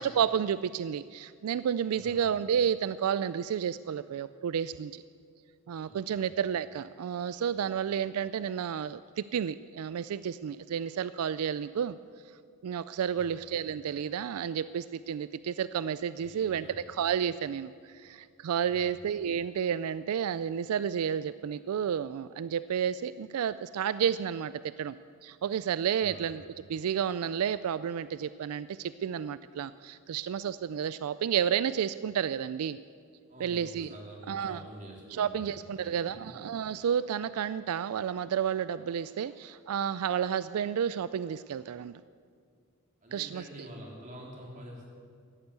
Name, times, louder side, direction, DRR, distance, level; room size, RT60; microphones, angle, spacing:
voice 1, 0.0-5.0 5.7-12.0 12.6-25.0 25.2-26.4 26.7-32.8 33.4-33.9 34.3-34.6 35.1-41.9 43.1-43.4, right 8 dB, 85° right, 15 dB, 0.3 m, -31 dB
voice 2, 1.9-2.3 5.8-6.3 13.1-13.4 16.1-16.8 18.7-19.0 25.9-26.3 33.3-36.3 43.0-44.9, right 1 dB, 35° right, -1 dB, 3.3 m, -48 dB
14.5 x 11.5 x 8.2 m, 2.2 s
head